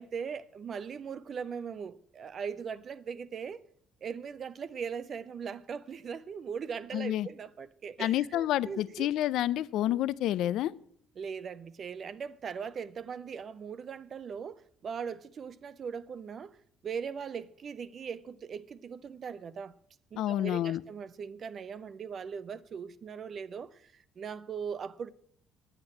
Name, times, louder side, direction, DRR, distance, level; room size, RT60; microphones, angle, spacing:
voice 1, 0.0-3.6 4.0-9.1 11.2-16.6 16.8-19.7 20.1-25.1, right 6 dB, 40° right, 0.4 m, -40 dB
voice 2, 6.9-7.3 8.0-10.7 20.2-20.8, left 13 dB, 70° left, 0.4 m, -29 dB
9.0 x 8.8 x 7.6 m
cardioid pair, 130°, 0 cm